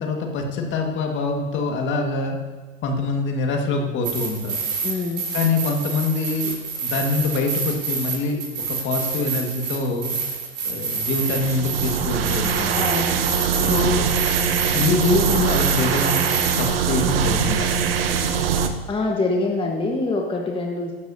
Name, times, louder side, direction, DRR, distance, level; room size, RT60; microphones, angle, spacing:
voice 1, 0.0-2.4 2.8-4.6 5.3-6.5 6.8-8.4 8.7-10.2 10.6-12.7 13.6-14.1 14.7-16.2 16.6-17.7, left 3 dB, 40° left, 2 dB, 1.9 m, -24 dB
sound 1, 4.0-16.7, right 5 dB, 35° right, 3.8 m, -28 dB
voice 2, 4.8-5.2 12.7-13.2 18.9-20.9, left 3 dB, 15° left, 0 dB, 1.4 m, -25 dB
sound 2, 11.1-18.7, right 7 dB, 70° right, 1.0 m, -22 dB
16.0 x 11.5 x 2.8 m, 1.3 s
hypercardioid pair, 90°, 30 cm